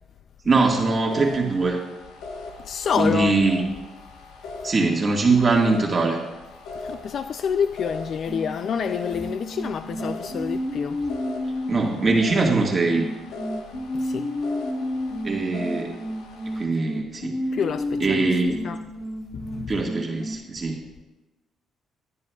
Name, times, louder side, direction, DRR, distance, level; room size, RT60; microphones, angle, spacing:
voice 1, 0.4-1.8 3.0-3.7 4.6-6.2 11.7-13.1 15.2-15.9 16.5-17.3 18.0-18.6 19.7-20.8, right 3 dB, 35° right, 1.7 m, -22 dB
sound 1, 0.6-16.6, left 2 dB, 90° left, 1.2 m, -40 dB
voice 2, 2.6-3.3 6.8-11.0 13.9-14.3 17.5-18.3 18.6-18.8 19.3-19.7, left 7 dB, 60° left, 0.3 m, -27 dB
sound 2, 8.3-20.3, left 1 dB, 20° left, 2.4 m, -31 dB
23.0 x 9.7 x 2.4 m
cardioid pair, 90°, 0 cm